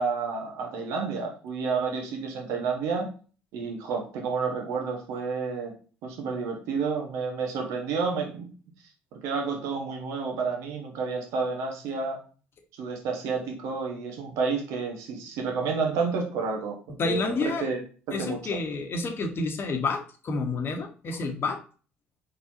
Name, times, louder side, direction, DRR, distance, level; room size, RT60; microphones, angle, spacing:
voice 1, 0.0-3.1 3.5-5.7 6.0-8.5 9.2-12.2 12.8-17.3 17.6-17.8 18.1-18.6, right 4 dB, 75° right, 2 dB, 1.4 m, -30 dB
voice 2, 17.0-17.7 18.1-21.6, left 3 dB, 45° left, 4 dB, 1.2 m, -29 dB
4.6 x 4.1 x 2.7 m, 0.38 s
hypercardioid pair, 65°, 5 cm